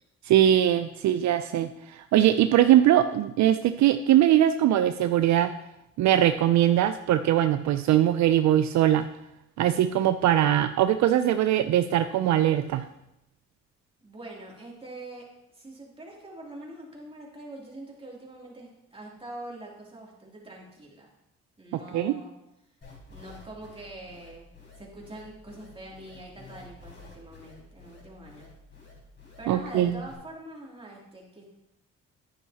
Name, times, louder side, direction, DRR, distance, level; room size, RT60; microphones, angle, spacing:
voice 1, 0.2-5.5 6.0-9.1 9.6-12.8 21.9-22.1 29.5-30.0, right 11 dB, 65° right, 9 dB, 0.5 m, -21 dB
voice 2, 14.0-15.3 15.5-21.1 21.6-22.3 23.1-24.5 24.8-28.5 29.4-31.4, right 1 dB, 20° right, -3 dB, 2.9 m, -44 dB
sound 1, 22.8-30.1, left 4 dB, 40° left, 3.8 m, -50 dB
10.0 x 9.4 x 2.8 m, 0.86 s
cardioid pair, 90°, 30 cm